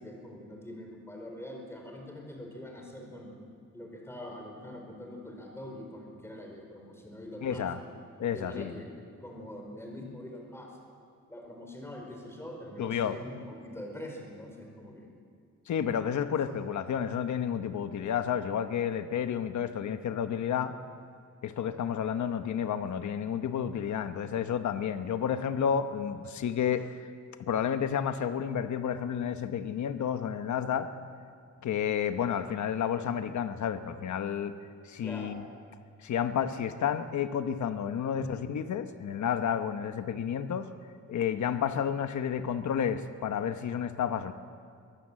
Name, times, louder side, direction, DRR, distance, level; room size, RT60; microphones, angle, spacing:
voice 1, 0.0-7.6 8.2-8.9 9.2-10.7 11.3-15.2 16.1-16.3 35.0-35.4, left 1 dB, 10° left, 0 dB, 4.9 m, -44 dB
voice 2, 7.4-7.8 8.2-8.7 12.8-13.2 15.7-20.7 21.4-27.1 27.4-30.9 31.6-34.5 34.8-35.4 36.0-40.7 41.1-44.3, left 8 dB, 75° left, 9 dB, 1.1 m, -31 dB
24.0 x 18.0 x 7.6 m, 2.2 s
wide cardioid pair, 140°, 30 cm